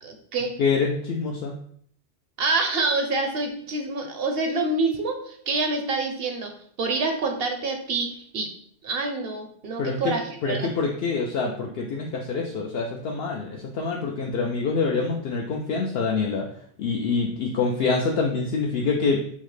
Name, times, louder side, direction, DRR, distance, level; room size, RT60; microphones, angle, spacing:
voice 1, 0.0-0.5 2.4-6.5 6.8-8.5 8.8-10.6, right 3 dB, 65° right, 5 dB, 0.7 m, -27 dB
voice 2, 0.6-1.6 9.8-10.1 10.4-16.5 16.8-19.2, left 4 dB, 65° left, -1 dB, 0.7 m, -26 dB
5.6 x 2.1 x 3.2 m, 0.62 s
omnidirectional pair, 1.2 m